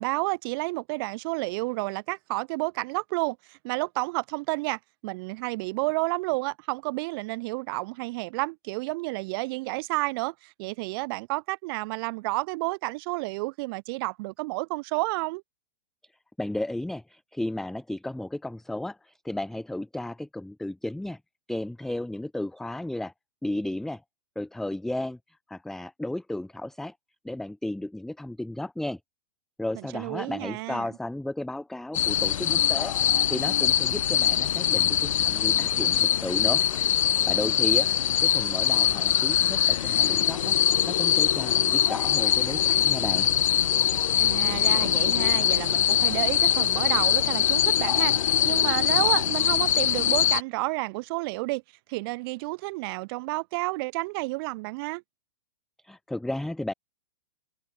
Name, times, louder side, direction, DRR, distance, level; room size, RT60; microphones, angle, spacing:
voice 1, 0.0-15.4 29.7-30.9 44.2-48.1 48.4-51.6 51.9-55.0, right 25 dB, 45° right, 2.6 m, -30 dB
voice 2, 16.4-21.2 21.5-23.1 23.4-24.0 24.4-26.9 27.2-29.0 29.6-36.6 37.1-40.5 40.9-43.3 55.8-56.7, left 1 dB, ahead, 0.7 m, -34 dB
sound 1, 31.9-50.4, left 10 dB, 80° left, 0.4 m, -23 dB
sound 2, 34.7-42.6, left 21 dB, 35° left, 2.6 m, -46 dB
hypercardioid pair, 120°, 16 cm